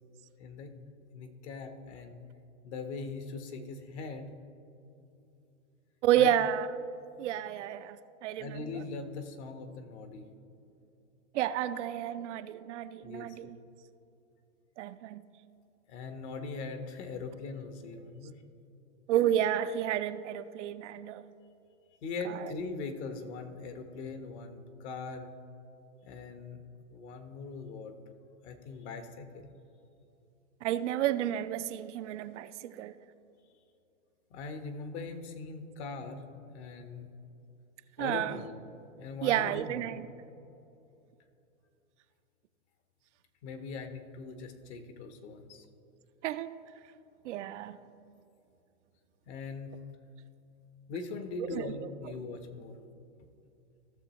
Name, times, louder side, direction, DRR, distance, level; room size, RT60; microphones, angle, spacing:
voice 1, 0.4-0.7 1.1-2.2 2.6-4.3 6.1-6.3 8.3-10.2 13.0-13.5 15.9-18.4 22.0-25.3 26.0-26.6 26.9-27.9 28.4-29.4 34.3-36.2 36.5-37.1 38.0-38.6 39.0-39.9 43.4-45.6 49.3-49.8 50.9-52.8, left 4 dB, 50° left, 1.1 m, -41 dB
voice 2, 6.0-6.7 7.2-8.6 11.3-13.6 14.8-15.2 19.1-21.2 22.2-22.4 30.6-32.9 38.0-38.4 39.2-40.1 46.2-46.6 47.2-47.8 51.4-51.9, right 11 dB, 60° right, 0.5 m, -31 dB
15.0 x 6.8 x 3.0 m
hypercardioid pair, 120°, 41 cm